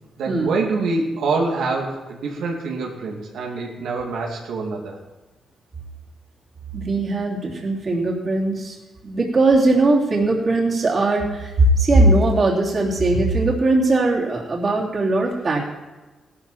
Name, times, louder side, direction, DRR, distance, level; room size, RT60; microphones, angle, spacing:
voice 1, 0.2-5.0, right 3 dB, 85° right, -1 dB, 2.6 m, -25 dB
voice 2, 6.7-8.8 9.0-15.7, right 2 dB, 35° right, -3 dB, 3.0 m, -19 dB
17.0 x 12.5 x 4.3 m, 1.2 s
cardioid pair, 130°, 0 cm